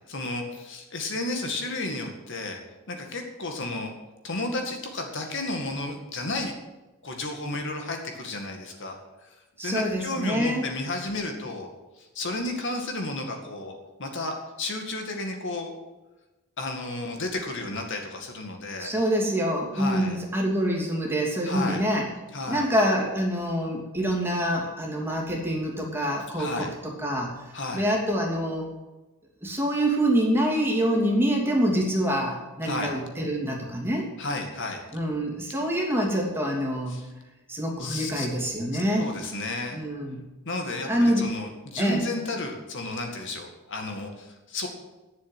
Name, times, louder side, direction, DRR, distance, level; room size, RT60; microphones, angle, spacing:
voice 1, 0.1-2.6 2.9-3.9 4.2-6.5 7.0-9.0 9.2-9.3 9.6-11.7 12.0-13.7 14.0-15.8 16.6-18.9 19.7-20.2 21.5-21.8 22.3-22.7 26.4-26.7 27.5-27.9 32.6-32.9 34.2-34.8 36.9-37.1 37.8-38.3 38.7-39.8 40.5-44.7, left 2 dB, 60° left, 3 dB, 2.0 m, -32 dB
voice 2, 9.6-10.6 18.8-22.1 22.5-27.3 27.7-28.7 29.4-34.1 34.9-37.0 37.5-39.1 39.7-40.2 40.9-41.3 41.8-42.0, equal, 10° right, -1 dB, 2.7 m, -26 dB
10.5 x 7.5 x 9.2 m, 1.1 s
head